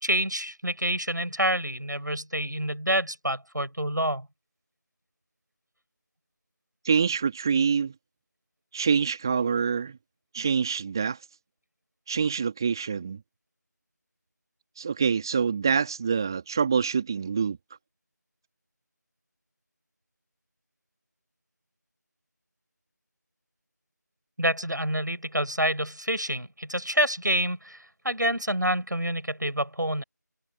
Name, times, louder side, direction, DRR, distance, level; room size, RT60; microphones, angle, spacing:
voice 1, 0.0-4.3 24.4-27.8 28.0-30.0, right 1 dB, 80° right, 6.4 m, -27 dB
voice 2, 6.8-7.9 8.7-10.0 10.3-11.2 12.1-13.2 14.8-17.6, right 6 dB, 15° right, 2.4 m, -25 dB
figure-of-eight pair, 170°, 10 cm